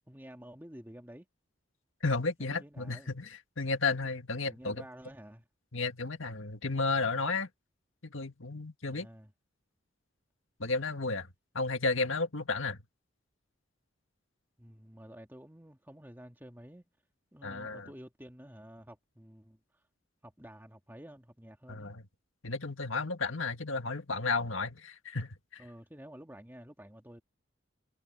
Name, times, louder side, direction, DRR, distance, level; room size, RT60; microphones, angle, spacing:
voice 1, 0.1-1.3 2.4-3.1 4.4-5.5 8.9-9.3 14.6-16.9 17.3-19.8 20.2-21.9 25.6-27.2, equal, 10° right, 1.8 m, -51 dB
voice 2, 2.0-4.8 5.7-7.5 8.0-9.1 10.6-11.3 11.5-12.8 17.4-17.9 21.7-22.0 22.4-25.6, left 3 dB, 85° left, 1.9 m, -33 dB
head